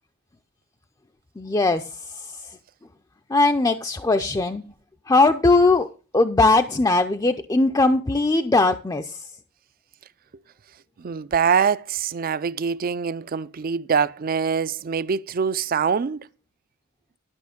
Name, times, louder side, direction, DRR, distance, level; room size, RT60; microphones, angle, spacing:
voice 1, 1.4-2.4 3.3-4.6 5.1-5.9 6.1-9.2, left 3 dB, 15° left, 0.5 m, -20 dB
voice 2, 11.0-16.3, right 6 dB, 45° right, 0.4 m, -24 dB
12.0 x 6.1 x 5.0 m
head